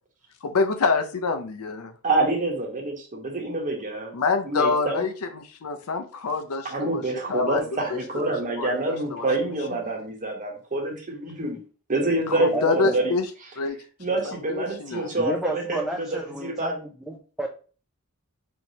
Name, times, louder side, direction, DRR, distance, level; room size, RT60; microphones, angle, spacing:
voice 1, 0.4-1.9 4.1-7.0 7.3-7.6 7.9-8.0 8.6-8.7 9.1-9.5 12.3-13.3 13.6-13.8 14.2-15.1, left 4 dB, 90° left, 8 dB, 0.6 m, -26 dB
voice 2, 2.0-4.1 4.4-5.0 6.6-11.6 11.9-13.1 14.0-16.8, right 2 dB, 35° right, 1 dB, 1.1 m, -27 dB
voice 3, 12.5-13.2 15.2-17.5, right 1 dB, ahead, 0 dB, 0.4 m, -31 dB
4.5 x 3.1 x 2.8 m, 0.38 s
head